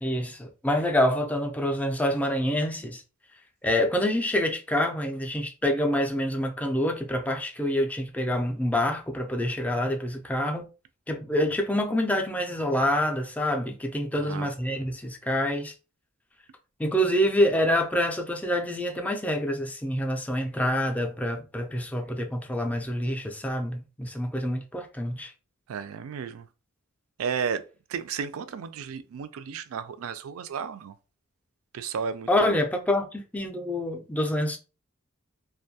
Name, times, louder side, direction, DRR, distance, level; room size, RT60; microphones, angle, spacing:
voice 1, 0.0-3.0 3.6-10.7 11.1-15.7 16.8-25.3 32.3-34.6, left 1 dB, 5° left, 0.4 m, -26 dB
voice 2, 14.1-14.5 25.7-26.5 27.2-27.6 27.9-30.9 31.7-32.6, right 6 dB, 85° right, 0.3 m, -33 dB
2.5 x 2.2 x 2.7 m
head